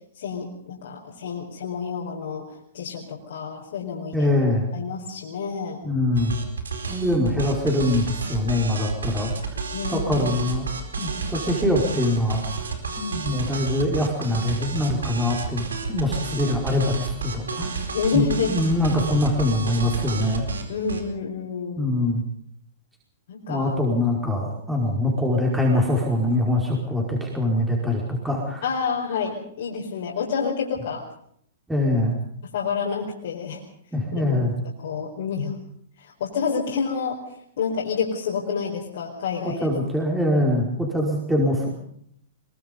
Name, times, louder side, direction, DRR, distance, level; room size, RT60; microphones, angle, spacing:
voice 1, 0.2-2.4 2.7-4.3 4.7-5.8 7.0-7.1 9.7-10.3 17.9-18.5 19.7-19.9 20.7-21.9 23.3-23.7 28.6-31.0 32.5-33.6 34.2-34.3 34.8-35.6 36.0-37.2 37.6-39.7, left 5 dB, 65° left, -3 dB, 4.8 m, -28 dB
voice 2, 4.1-4.7 5.8-6.4 6.9-9.3 9.9-10.7 11.0-12.4 13.0-15.6 15.9-17.7 18.1-20.4 21.8-22.2 23.5-28.6 31.7-32.2 33.9-34.5 39.6-41.7, left 1 dB, 5° right, -2 dB, 4.9 m, -23 dB
sound 1, 6.1-21.0, right 5 dB, 85° right, 4.4 m, -31 dB
23.0 x 22.0 x 5.4 m, 0.68 s
hypercardioid pair, 120°, 0 cm